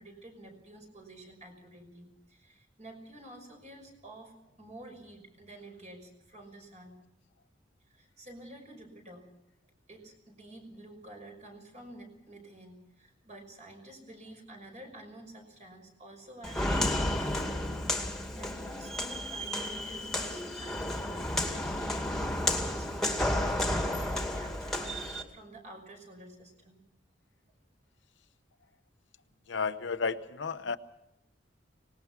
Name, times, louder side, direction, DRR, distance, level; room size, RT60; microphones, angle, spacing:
voice 1, 0.0-7.0 7.9-9.3 9.9-26.8, right 1 dB, 40° right, 3 dB, 5.7 m, -50 dB
Walk footsteps, 16.4-25.2, left 1 dB, 5° left, 2.3 m, -32 dB
voice 2, 29.5-30.8, left 5 dB, 70° left, 10 dB, 0.9 m, -32 dB
24.5 x 19.5 x 5.9 m, 0.83 s
head